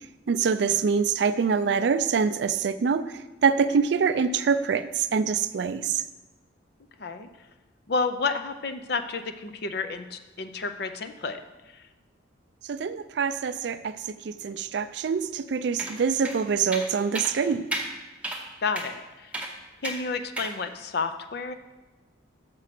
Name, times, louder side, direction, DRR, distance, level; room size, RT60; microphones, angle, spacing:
voice 1, 0.3-6.0 12.7-17.7, right 6 dB, 60° right, 13 dB, 0.3 m, -25 dB
voice 2, 7.9-11.4 11.7-11.8 18.6-19.3 19.8-21.5, left 4 dB, 55° left, 9 dB, 0.5 m, -31 dB
sound 1, 15.8-15.9 16.2-16.4 16.7-16.9 17.1-17.3 17.7-17.9 18.2-18.4 18.7-18.9 19.3-19.5 19.8-20.0 20.4-20.5, right 1 dB, 5° right, 0.7 m, -32 dB
6.5 x 6.1 x 5.9 m, 1.2 s
head